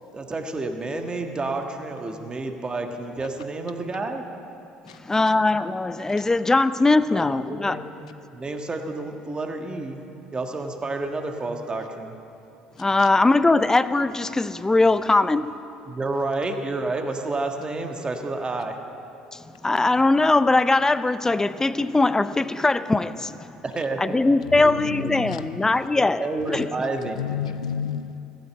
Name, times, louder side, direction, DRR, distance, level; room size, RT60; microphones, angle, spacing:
voice 1, 0.1-4.2 7.1-7.2 7.5-7.8 8.2-10.0 10.3-12.1 15.8-18.8 23.6-24.0 24.6-24.7 25.9-27.3, right 2 dB, 25° right, 4 dB, 1.6 m, -30 dB
voice 2, 5.0-7.8 12.8-15.5 19.3-23.5 24.0-26.7, left 2 dB, 15° left, 14 dB, 0.5 m, -21 dB
voice 3, 24.5-25.7 27.2-28.2, left 8 dB, 90° left, 14 dB, 0.4 m, -31 dB
15.5 x 8.9 x 7.7 m, 2.8 s
hypercardioid pair, 60°, 3 cm